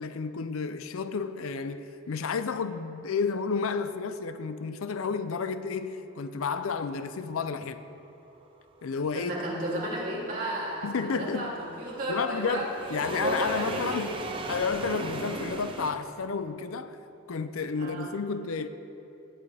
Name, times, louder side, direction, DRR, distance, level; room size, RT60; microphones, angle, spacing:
voice 1, 0.0-7.8 8.8-9.3 10.8-11.5 12.1-14.1 14.5-17.0 17.3-18.7, left 5 dB, 80° left, 0.5 m, -31 dB
sound 1, 9.0-15.9, right 2 dB, 25° right, 0.7 m, -38 dB
voice 2, 9.1-14.2 17.8-18.2, right 1 dB, 40° right, 3.0 m, -33 dB
18.0 x 8.6 x 3.4 m
head